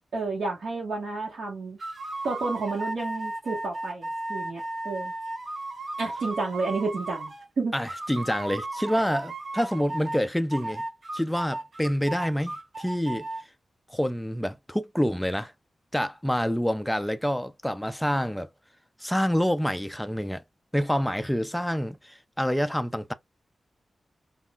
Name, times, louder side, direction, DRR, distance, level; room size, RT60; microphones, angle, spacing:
voice 1, 0.1-1.8 2.2-5.1 6.0-7.7, right 3 dB, 75° right, 1.2 m, -31 dB
sound 1, 1.8-7.5 7.9-10.2 10.5-13.4, right 2 dB, 45° right, 0.8 m, -35 dB
voice 2, 7.7-10.8 11.1-13.3 13.9-15.5 15.9-18.5 19.0-20.4 20.7-23.1, equal, 5° left, 0.3 m, -27 dB
3.7 x 2.5 x 2.3 m
wide cardioid pair, 130°, 0 cm